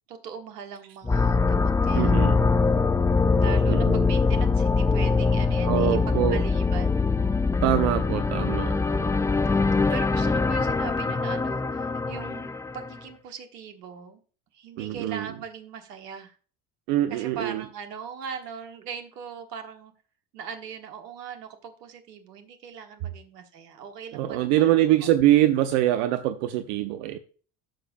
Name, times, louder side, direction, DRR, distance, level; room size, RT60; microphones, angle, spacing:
voice 1, 0.1-2.3 3.4-7.0 9.4-14.2 14.5-16.4 17.1-19.9 20.3-25.1, right 7 dB, 80° right, 1.4 m, -40 dB
sound 1, 1.0-13.0, left 4 dB, 5° left, 0.3 m, -23 dB
voice 2, 1.9-2.5 3.7-4.0 5.6-6.4 7.6-9.1 14.8-15.3 16.9-17.6 24.1-27.2, right 13 dB, 60° right, 0.8 m, -24 dB
13.0 x 7.0 x 2.5 m
figure-of-eight pair, 60°, 48 cm